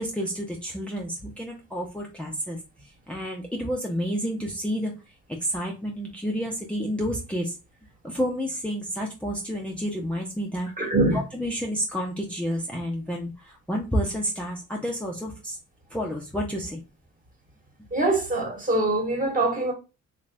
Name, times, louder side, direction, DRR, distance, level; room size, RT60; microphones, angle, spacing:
voice 1, 0.0-2.6 3.1-4.9 5.4-7.5 8.0-10.7 11.1-15.6 15.9-16.8, equal, 5° left, 0.7 m, -30 dB
voice 2, 10.8-11.2 17.9-19.7, right 2 dB, 25° right, 1.4 m, -23 dB
3.2 x 2.5 x 3.3 m
cardioid pair, 90°, 30 cm